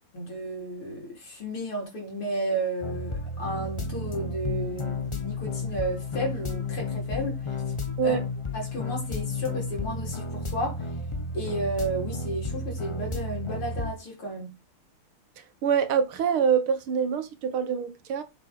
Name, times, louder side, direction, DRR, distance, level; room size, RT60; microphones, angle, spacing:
voice 1, 0.1-7.6 8.0-8.2 8.5-10.9 11.3-14.6, right 1 dB, 90° left, 5.2 m, -33 dB
sound 1, 2.8-13.9, left 3 dB, 30° left, 0.5 m, -32 dB
voice 2, 15.6-18.2, right 7 dB, 80° right, 2.2 m, -25 dB
8.1 x 6.8 x 5.6 m
omnidirectional pair, 2.3 m